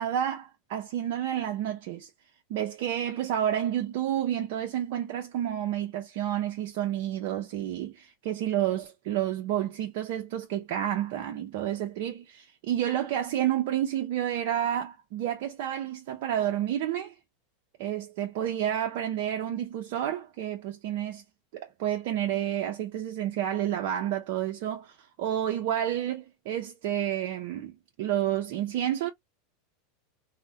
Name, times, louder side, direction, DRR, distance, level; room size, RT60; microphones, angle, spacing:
voice 1, 0.0-2.1 2.5-17.1 17.8-21.2 21.5-29.1, right 11 dB, 65° right, 0.4 m, -30 dB
3.1 x 2.1 x 2.6 m
hypercardioid pair, 105°, 0 cm